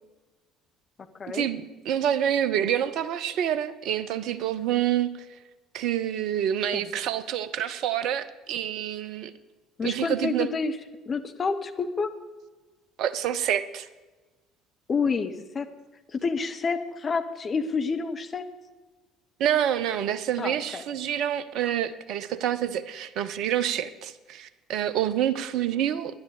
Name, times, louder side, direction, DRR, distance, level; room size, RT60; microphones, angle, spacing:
voice 1, 1.3-5.1 5.7-9.3 9.8-10.5 13.0-13.9 19.4-26.2, right 10 dB, 55° right, 13 dB, 0.7 m, -27 dB
voice 2, 9.8-10.7 11.1-12.1 14.9-15.7 16.1-18.4 20.4-20.8, left 4 dB, 30° left, 7 dB, 1.0 m, -28 dB
10.5 x 10.5 x 6.6 m, 1.2 s
figure-of-eight pair, 55°, 0 cm